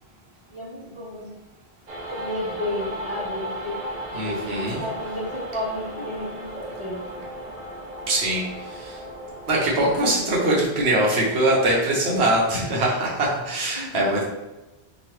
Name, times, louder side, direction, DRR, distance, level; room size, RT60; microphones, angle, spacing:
voice 1, 0.5-1.3 2.1-3.8 4.2-7.2 13.7-14.0, left 1 dB, 30° left, -6 dB, 0.8 m, -32 dB
sound 1, 1.9-10.0, right 1 dB, 45° right, 0.5 m, -35 dB
voice 2, 4.1-4.8 8.1-8.4 8.7-9.0 9.5-14.2, right 1 dB, 85° right, -3 dB, 1.1 m, -22 dB
2.9 x 2.3 x 3.1 m, 1.0 s
omnidirectional pair, 1.1 m